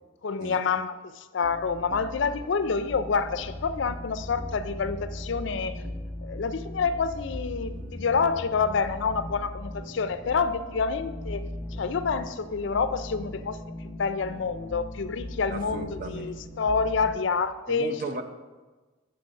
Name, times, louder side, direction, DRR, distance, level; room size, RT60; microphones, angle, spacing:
voice 1, 0.2-5.7 6.2-11.5 11.8-13.6 13.8-18.0, left 5 dB, 65° left, 12 dB, 0.4 m, -28 dB
sound 1, 1.4-17.2, left 1 dB, 15° left, 0.7 m, -39 dB
voice 2, 15.5-16.4 17.7-18.2, right 3 dB, 45° right, 6 dB, 0.7 m, -35 dB
7.8 x 6.9 x 5.2 m, 1.3 s
head